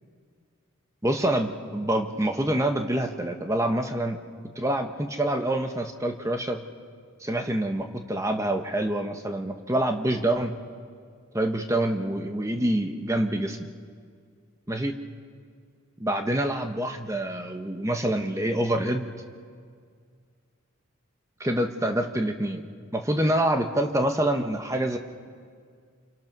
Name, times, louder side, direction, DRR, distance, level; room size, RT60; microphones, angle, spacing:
voice 1, 1.0-4.2 4.6-6.6 7.2-10.6 11.3-13.6 14.7-14.9 16.0-19.1 21.4-22.6 22.9-25.0, right 1 dB, 15° right, 5 dB, 1.2 m, -26 dB
29.0 x 27.0 x 6.1 m, 2.1 s
head